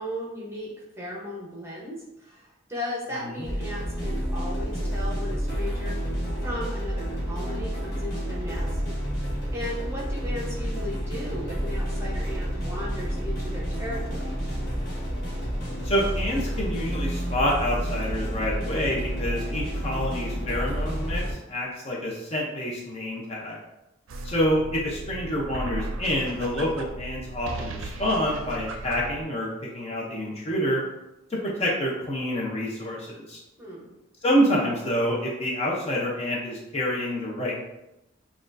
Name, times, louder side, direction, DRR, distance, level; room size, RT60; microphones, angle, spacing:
voice 1, 0.0-6.0 6.4-8.7 9.5-14.3 33.6-33.9, left 1 dB, 15° right, -4 dB, 0.8 m, -36 dB
sound 1, 3.4-21.3, equal, 50° left, 1.4 m, -30 dB
voice 2, 15.8-23.6 24.2-29.5 29.7-30.8 31.3-33.4 34.2-37.5, equal, 30° left, -3 dB, 0.6 m, -27 dB
sound 2, 24.1-29.2, right 2 dB, 85° right, 0.5 m, -36 dB
6.0 x 2.4 x 2.5 m, 0.92 s
head